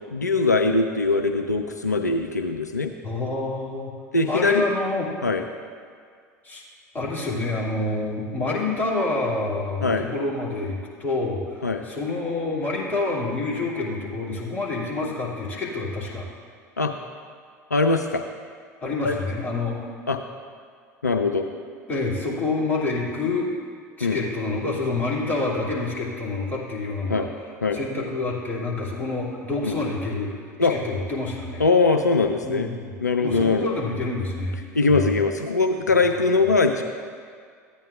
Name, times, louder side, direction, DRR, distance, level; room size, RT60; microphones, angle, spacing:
voice 1, 0.1-2.9 4.1-4.6 5.2-5.4 9.8-10.1 11.6-11.8 16.8-16.9 17.7-18.3 19.0-19.2 20.1-20.2 21.0-21.5 24.0-24.2 27.1-27.3 27.6-27.8 29.6-29.8 30.6-30.8 31.6-32.7 33.0-33.7 34.7-36.8, left 3 dB, 85° left, 5 dB, 0.4 m, -21 dB
voice 2, 3.0-3.9 4.3-5.1 6.4-6.7 6.9-16.3 18.8-19.8 21.5-21.6 21.9-23.5 24.0-27.3 27.7-30.3 30.6-31.6 32.4-32.9 33.2-34.6 34.9-35.1, left 3 dB, 20° left, -6 dB, 2.6 m, -27 dB
13.5 x 8.9 x 2.5 m, 2.1 s
figure-of-eight pair, 75°, 9 cm